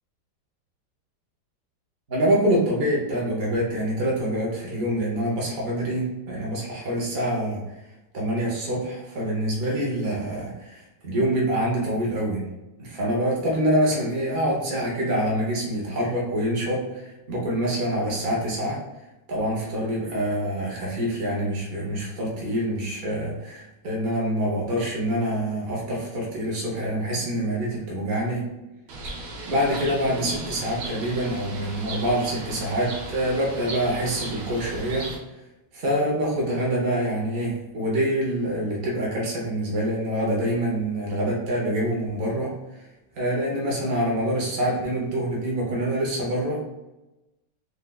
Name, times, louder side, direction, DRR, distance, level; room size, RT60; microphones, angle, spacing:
voice 1, 2.1-7.7 8.1-12.5 12.8-18.8 19.3-28.5 29.5-35.1 35.7-42.6 43.1-46.7, right 1 dB, 60° right, -3 dB, 0.6 m, -26 dB
Bird, 28.9-35.2, right 2 dB, 85° right, 1.4 m, -36 dB
3.3 x 3.0 x 2.2 m, 1.0 s
omnidirectional pair, 1.9 m